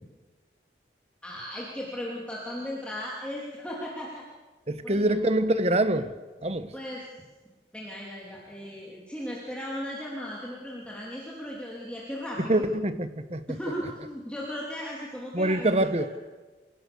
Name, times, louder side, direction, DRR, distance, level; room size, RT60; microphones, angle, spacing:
voice 1, 1.2-4.2 4.8-5.4 6.7-7.1 7.7-12.7 13.5-15.9, equal, 5° left, -4 dB, 3.1 m, -36 dB
voice 2, 4.7-6.1 6.4-6.7 12.5-13.4 15.3-16.1, right 1 dB, 35° right, 11 dB, 1.3 m, -25 dB
27.5 x 17.0 x 7.0 m, 1.3 s
head